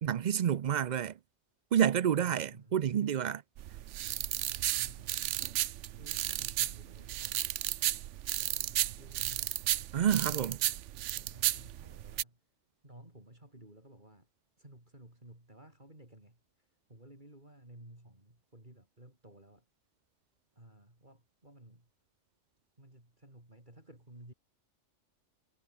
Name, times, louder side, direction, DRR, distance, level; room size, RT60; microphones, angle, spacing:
voice 1, 0.0-1.2 1.7-3.4 9.9-10.6, right 9 dB, 55° right, 0.5 m, -29 dB
voice 2, 2.1-2.8 4.5-5.7 6.0-7.5 8.3-9.6 10.1-10.8 11.1-12.4 12.8-14.3 14.6-19.6 20.5-21.9 22.8-24.3, right 1 dB, 40° right, 6.0 m, -55 dB
sound 1, 3.6-12.2, right 13 dB, 80° right, 0.9 m, -34 dB
omnidirectional pair, 1.3 m